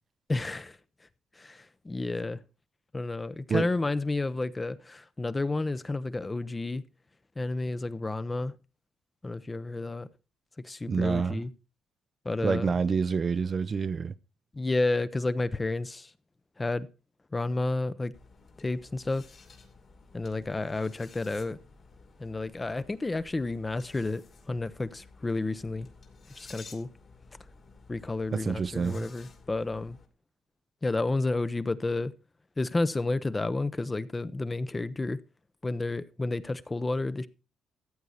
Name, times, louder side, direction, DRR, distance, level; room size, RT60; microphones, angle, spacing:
voice 1, 0.3-1.1 1.3-2.4 2.9-6.8 7.4-8.5 9.2-10.1 10.6-11.5 12.2-12.7 14.5-16.1 16.6-16.9 17.3-18.1 18.6-19.2 20.1-21.6 22.2-25.9 26.4-26.9 27.9-30.0 30.8-32.1 32.6-35.2 35.6-37.3, left 2 dB, 20° left, 0.7 m, -31 dB
voice 2, 10.9-11.4 12.4-14.1 28.3-29.0, right 5 dB, 40° right, 0.5 m, -28 dB
sound 1, 18.1-30.1, left 4 dB, 50° left, 2.5 m, -53 dB
14.0 x 8.2 x 4.1 m
cardioid pair, 90°, 0 cm